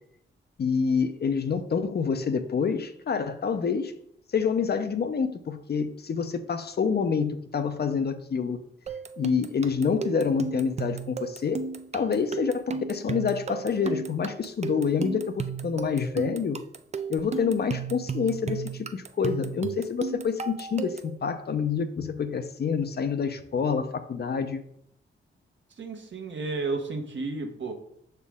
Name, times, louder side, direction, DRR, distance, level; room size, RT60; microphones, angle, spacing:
voice 1, 0.6-3.9 4.3-8.6 9.2-11.6 11.9-16.6 17.1-24.6, left 6 dB, 50° left, 9 dB, 0.6 m, -27 dB
sound 1, 8.9-21.2, right 6 dB, 30° right, 0.4 m, -34 dB
voice 2, 25.8-27.7, right 3 dB, 60° right, 5 dB, 1.0 m, -32 dB
6.1 x 4.5 x 3.5 m, 0.69 s
cardioid pair, 65°, 21 cm